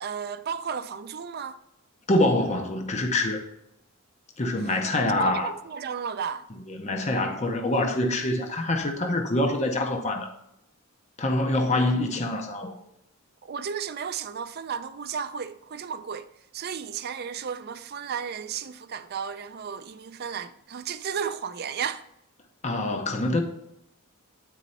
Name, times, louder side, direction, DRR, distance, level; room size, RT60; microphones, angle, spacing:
voice 1, 0.0-1.6 4.6-4.7 5.1-6.4 13.4-22.0, right 7 dB, 45° right, 0.4 m, -34 dB
voice 2, 2.1-3.5 4.4-5.5 6.7-10.3 11.2-12.7 22.6-23.4, left 1 dB, 30° left, 0.6 m, -25 dB
9.1 x 4.2 x 4.1 m
head